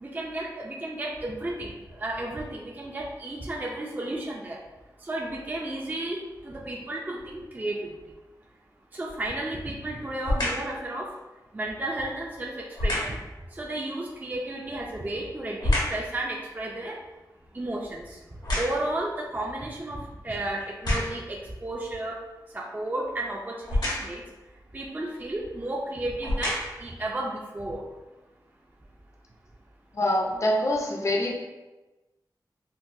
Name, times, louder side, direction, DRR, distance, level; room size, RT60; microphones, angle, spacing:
voice 1, 0.0-4.6 5.1-7.9 8.9-11.1 11.5-13.2 13.5-17.0 17.5-18.0 18.5-22.2 22.5-24.2 24.7-27.8, right 1 dB, 25° right, -2 dB, 0.4 m, -33 dB
sound 1, 9.1-9.5 10.2-10.7 12.7-13.2 14.7-16.1 16.6-19.1 19.7-19.8 20.6-21.3 23.6-24.2 25.3-25.4 26.1-26.9 27.5-27.6, left 1 dB, 75° left, 1.1 m, -29 dB
voice 2, 29.9-31.3, left 1 dB, 45° left, -1 dB, 0.5 m, -25 dB
3.8 x 2.1 x 2.6 m, 1.1 s
wide cardioid pair, 75°, 7 cm